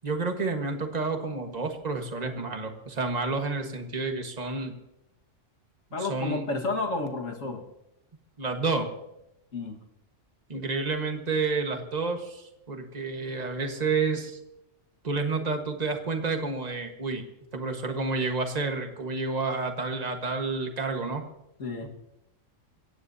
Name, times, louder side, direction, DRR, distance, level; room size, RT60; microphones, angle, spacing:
voice 1, 0.0-4.8 6.0-6.4 8.4-8.9 10.5-14.4 15.0-17.2 17.5-21.3 21.8-21.9, right 3 dB, 35° right, 4 dB, 1.6 m, -30 dB
voice 2, 5.9-7.6 9.5-9.8 21.6-21.9, left 3 dB, 85° left, 2 dB, 2.1 m, -31 dB
23.0 x 17.0 x 2.8 m, 0.86 s
omnidirectional pair, 1.3 m